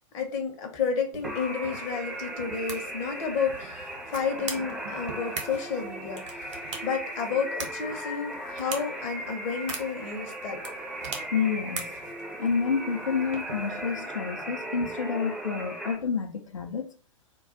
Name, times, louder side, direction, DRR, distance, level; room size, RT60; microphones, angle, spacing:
voice 1, 0.1-10.6, left 5 dB, 40° left, 0.7 m, -31 dB
sound 1, 1.1-14.0, right 4 dB, 65° right, 0.9 m, -42 dB
sound 2, 1.2-16.0, right 1 dB, ahead, 0.5 m, -37 dB
voice 2, 11.3-11.9 12.4-16.9, left 6 dB, 75° left, 0.5 m, -29 dB
2.3 x 2.3 x 3.8 m
figure-of-eight pair, 95°, 17 cm